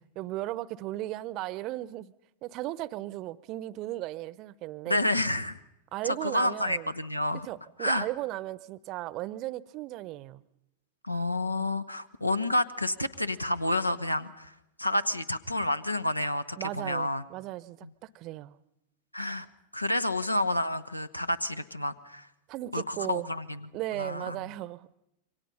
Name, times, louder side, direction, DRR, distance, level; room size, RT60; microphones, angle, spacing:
voice 1, 0.2-2.1 2.4-5.0 5.9-6.9 7.4-10.4 16.6-18.6 22.5-23.3 23.7-24.9, right 16 dB, 40° right, 20 dB, 0.7 m, -36 dB
voice 2, 4.9-5.6 6.0-7.5 7.8-8.1 11.0-14.5 14.8-17.2 19.1-19.5 19.7-22.3 22.7-23.7 24.0-24.4, left 1 dB, 85° left, 15 dB, 0.9 m, -29 dB
27.5 x 24.0 x 5.5 m, 0.86 s
figure-of-eight pair, 90°, 0 cm